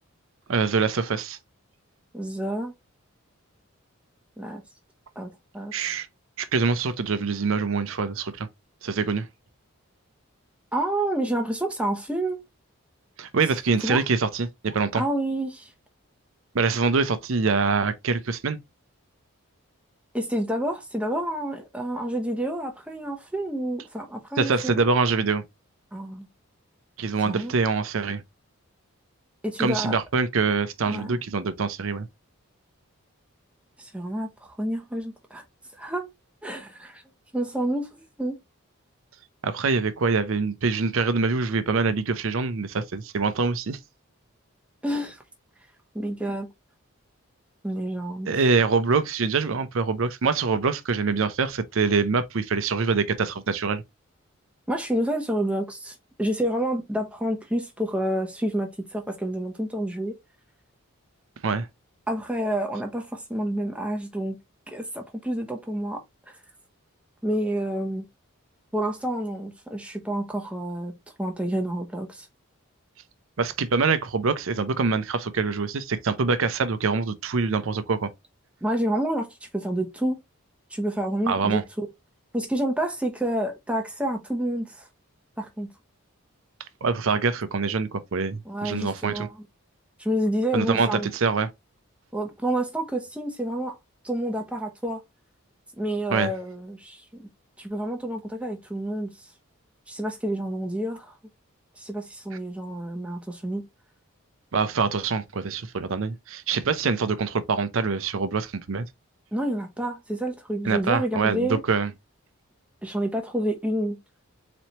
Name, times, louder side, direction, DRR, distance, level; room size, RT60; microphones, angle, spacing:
voice 1, 0.5-1.4 5.7-6.1 6.4-8.5 8.8-9.3 13.2-15.0 16.5-18.6 24.4-25.4 27.0-28.2 29.6-32.1 39.4-43.8 48.3-53.8 61.4-61.7 73.4-78.1 81.3-81.6 86.8-89.3 90.5-91.5 96.1-96.3 104.5-108.8 110.6-111.9, right 4 dB, 65° right, 0.5 m, -24 dB
voice 2, 2.1-2.7 4.4-4.6 5.2-5.7 10.7-12.4 13.8-14.0 14.9-15.7 20.1-24.8 25.9-26.3 27.2-27.5 29.4-30.0 30.9-31.2 33.8-35.4 35.8-36.1 36.4-37.0 37.3-38.4 44.8-45.2 45.9-46.5 47.6-48.3 54.7-60.2 62.1-64.4 64.7-66.0 67.2-68.1 68.7-70.9 71.2-72.3 78.6-80.2 80.7-81.9 82.3-84.9 85.4-85.7 88.4-89.4 90.0-91.1 92.1-93.8 94.0-95.0 95.8-97.3 97.6-99.3 99.9-101.1 101.8-103.7 109.3-111.6 112.8-114.0, right 1 dB, 5° right, 0.7 m, -29 dB
4.2 x 3.1 x 2.8 m
head